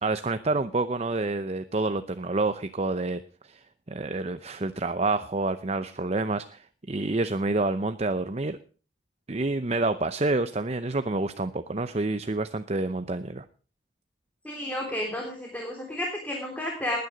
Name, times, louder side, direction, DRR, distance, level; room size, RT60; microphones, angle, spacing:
voice 1, 0.0-3.6 3.9-8.6 9.3-13.4, right 2 dB, 35° right, 11 dB, 0.7 m, -28 dB
voice 2, 14.4-17.0, left 1 dB, 10° left, 0 dB, 3.5 m, -32 dB
20.0 x 9.5 x 5.1 m, 0.38 s
head